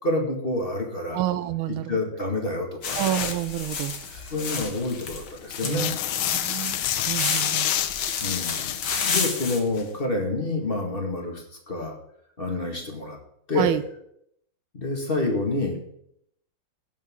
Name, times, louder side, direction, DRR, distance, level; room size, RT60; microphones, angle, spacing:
voice 1, 0.0-1.2 1.7-3.1 4.3-5.9 8.2-11.9 12.4-13.2 13.5-13.8 14.7-15.8, left 2 dB, 25° left, 1 dB, 2.1 m, -28 dB
voice 2, 1.1-2.0 3.0-4.0 5.6-6.0 6.3-7.9 13.6-13.8, right 13 dB, 85° right, 13 dB, 1.5 m, -28 dB
sound 1, 2.8-9.6, left 5 dB, 55° left, 2.0 m, -31 dB
sound 2, 2.9-3.4 3.8-4.8 5.2-9.1 9.7-9.9, left 11 dB, 80° left, 1.5 m, -29 dB
17.5 x 7.3 x 3.7 m, 0.72 s
omnidirectional pair, 2.3 m